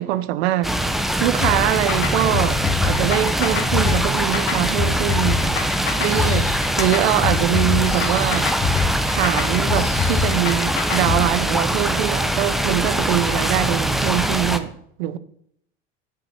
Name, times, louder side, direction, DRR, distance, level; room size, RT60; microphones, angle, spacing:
voice 1, 0.0-5.5 6.0-8.5 9.1-15.2, right 14 dB, 75° right, 0.9 m, -23 dB
sound 1, 0.6-14.6, right 1 dB, ahead, 0.9 m, -22 dB
sound 2, 1.4-11.2, left 5 dB, 40° left, 2.2 m, -24 dB
sound 3, 6.0-6.8 7.9-8.6 9.7-10.4, left 7 dB, 75° left, 2.0 m, -38 dB
9.1 x 6.9 x 5.9 m
hypercardioid pair, 95°, 31 cm